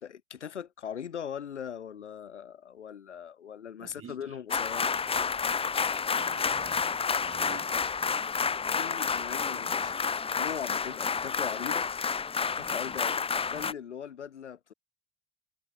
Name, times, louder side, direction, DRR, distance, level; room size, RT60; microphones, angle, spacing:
voice 1, 0.0-4.9 8.7-9.9 10.3-11.9 12.6-13.2 13.5-14.7, left 8 dB, 90° left, 2.3 m, -40 dB
voice 2, 3.8-4.4 6.1-7.7, right 8 dB, 40° right, 7.9 m, -48 dB
sound 1, 4.5-13.7, left 5 dB, 15° left, 0.6 m, -30 dB
hypercardioid pair, 65°, 34 cm